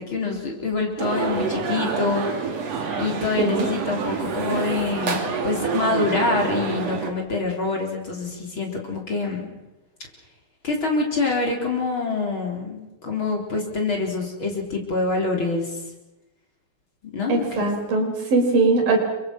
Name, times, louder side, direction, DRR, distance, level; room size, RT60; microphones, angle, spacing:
voice 1, 0.0-2.3 3.0-9.5 10.6-15.8 17.0-17.7, left 3 dB, 35° left, 0 dB, 4.5 m, -26 dB
sound 1, 1.0-7.1, right 5 dB, 50° right, 3.6 m, -27 dB
voice 2, 3.4-3.7 17.3-19.0, right 3 dB, 80° right, 2 dB, 6.3 m, -20 dB
29.5 x 24.5 x 6.1 m, 1.0 s
omnidirectional pair, 4.0 m